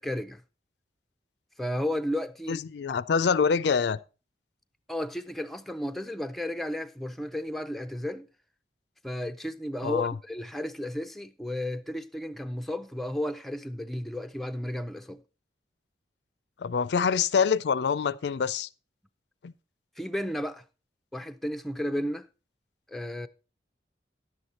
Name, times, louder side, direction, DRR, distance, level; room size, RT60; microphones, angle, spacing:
voice 1, 0.0-0.4 1.6-2.6 4.9-8.3 9.0-15.2 20.0-20.6 21.1-22.3 22.9-23.3, left 1 dB, ahead, 0.4 m, -33 dB
voice 2, 2.5-4.0 9.8-10.1 16.6-18.7 19.4-19.5, left 6 dB, 70° left, 0.4 m, -25 dB
10.5 x 8.0 x 4.1 m
head